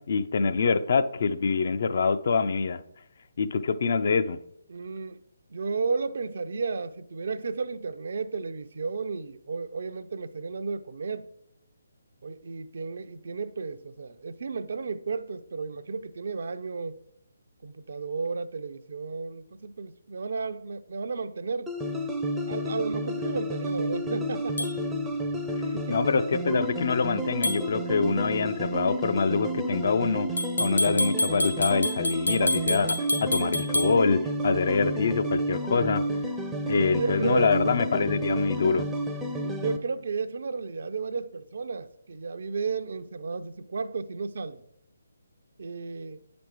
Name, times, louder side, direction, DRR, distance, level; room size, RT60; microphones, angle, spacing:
voice 1, 0.0-2.8 3.4-4.4 25.9-36.0 36.7-38.9, left 5 dB, 45° left, 0.5 m, -25 dB
voice 2, 4.7-5.2 5.5-11.3 12.2-17.0 17.6-21.7 22.5-24.7 25.7-26.1 36.7-37.5 39.4-44.6 45.6-46.2, right 4 dB, 50° right, 0.5 m, -33 dB
sound 1, 21.7-39.8, right 1 dB, 5° right, 0.6 m, -31 dB
sound 2, 24.6-24.7 27.4-27.6 30.4-33.9, left 1 dB, 75° left, 1.9 m, -28 dB
9.2 x 5.2 x 4.7 m
figure-of-eight pair, 140°, 0 cm